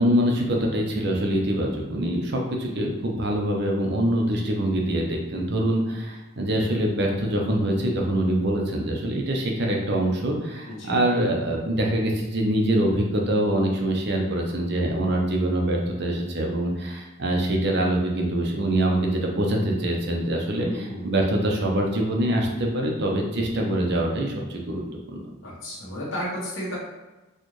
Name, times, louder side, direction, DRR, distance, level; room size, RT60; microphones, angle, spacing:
voice 1, 0.0-24.8 25.1-25.2, right 1 dB, 50° right, 0 dB, 0.6 m, -24 dB
voice 2, 20.5-21.1 25.4-26.8, equal, 65° left, -7 dB, 1.0 m, -33 dB
4.2 x 2.4 x 3.1 m, 1.1 s
head